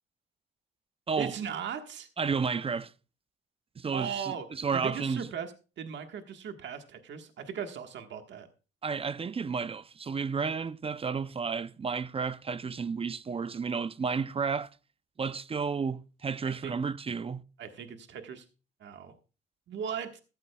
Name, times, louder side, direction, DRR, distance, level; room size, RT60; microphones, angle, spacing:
voice 1, 1.2-2.1 3.9-8.5 16.4-16.8 17.6-18.4 18.8-19.1 19.7-20.2, right 7 dB, 65° right, 1.5 m, -38 dB
voice 2, 2.2-2.9 3.8-5.3 8.8-14.7 15.2-17.4, right 5 dB, 30° right, 0.5 m, -32 dB
14.5 x 13.5 x 2.3 m
cardioid pair, 90°, 20 cm